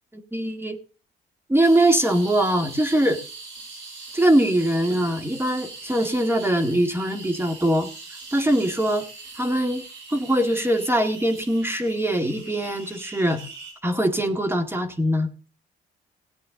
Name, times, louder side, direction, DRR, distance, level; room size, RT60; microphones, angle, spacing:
voice 1, 0.1-0.8 1.5-3.2 4.1-7.9 8.3-9.1 9.4-9.9 10.1-13.4 13.8-15.3, right 1 dB, 10° right, 7 dB, 1.9 m, -22 dB
sound 1, 1.6-13.7, right 3 dB, 75° right, 6.0 m, -41 dB
17.5 x 8.7 x 3.8 m, 0.37 s
cardioid pair, 90°, 20 cm